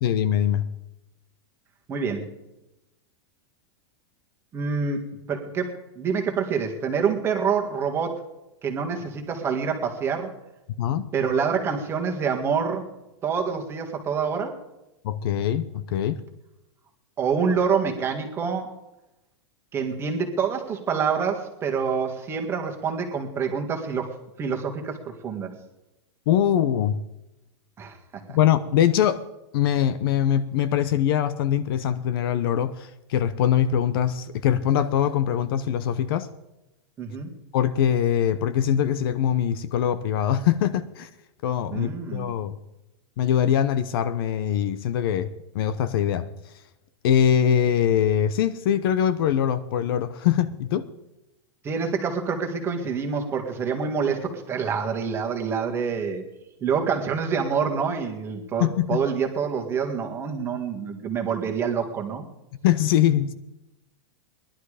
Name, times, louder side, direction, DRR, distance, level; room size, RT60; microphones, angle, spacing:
voice 1, 0.0-0.7 10.8-11.1 15.0-16.2 26.3-27.0 28.3-29.2 29.5-36.3 37.5-41.1 41.4-42.6 43.2-45.3 45.5-46.3 47.0-50.9 58.6-59.0 62.6-63.3, left 10 dB, 55° left, 13 dB, 0.9 m, -22 dB
voice 2, 1.9-2.3 4.5-8.2 8.6-10.3 11.1-12.9 13.2-14.6 17.2-18.7 19.7-24.1 24.4-25.0 25.2-25.5 27.8-28.0 37.0-37.3 41.7-42.3 51.6-56.2 56.6-62.2, right 6 dB, 15° right, 3 dB, 1.8 m, -26 dB
19.0 x 11.5 x 5.0 m, 0.92 s
supercardioid pair, 165°, 15 cm